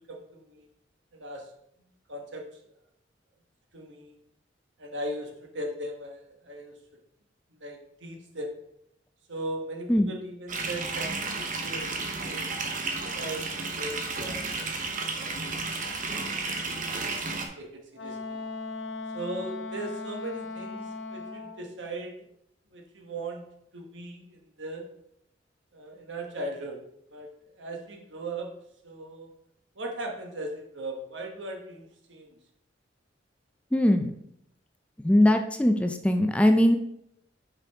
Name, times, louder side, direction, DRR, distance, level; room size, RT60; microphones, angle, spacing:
voice 1, 0.1-0.7 1.1-1.5 2.1-2.4 3.7-4.1 4.8-6.8 7.6-8.5 9.3-12.4 13.0-15.3 16.8-17.2 17.6-18.4 19.1-22.3 22.7-23.4 23.7-24.9 25.7-26.8 27.1-27.3 27.6-28.5 28.8-29.3 29.7-32.4, right 1 dB, 70° right, 2 dB, 1.2 m, -38 dB
sound 1, 10.5-17.5, right 3 dB, 45° right, 0.9 m, -32 dB
Wind instrument woodwind instrument, 17.9-21.6, left 3 dB, 90° left, 0.9 m, -38 dB
voice 2, 33.7-34.1 35.0-36.8, left 1 dB, 5° left, 6 dB, 0.3 m, -21 dB
5.7 x 5.2 x 3.5 m, 0.76 s
head